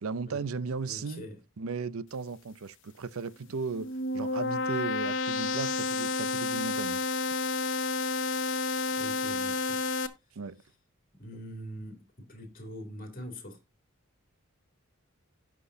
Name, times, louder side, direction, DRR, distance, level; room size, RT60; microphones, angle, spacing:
voice 1, 0.0-1.3 1.6-7.0 10.4-10.6, right 4 dB, 70° right, 0.6 m, -36 dB
voice 2, 0.9-1.4 9.0-9.8 10.1-10.7 11.1-13.6, equal, 40° left, 2.9 m, -44 dB
sound 1, 3.6-10.1, left 3 dB, 60° left, 1.0 m, -30 dB
17.0 x 6.0 x 2.7 m
head